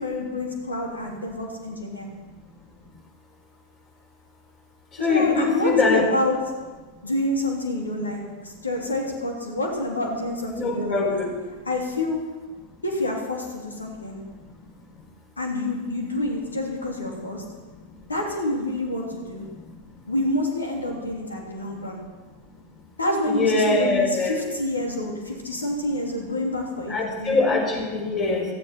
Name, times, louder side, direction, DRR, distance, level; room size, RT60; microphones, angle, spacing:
voice 1, 0.0-2.1 5.0-6.4 7.0-11.2 11.6-12.2 12.8-14.2 15.4-17.4 18.1-19.5 20.1-22.0 23.0-27.4, left 1 dB, 75° left, 0 dB, 3.2 m, -28 dB
voice 2, 5.0-6.0 10.6-11.3 23.3-24.4 26.9-28.4, left 3 dB, 30° left, 0 dB, 4.5 m, -22 dB
18.0 x 13.5 x 4.5 m, 1.3 s
figure-of-eight pair, 90°, 0 cm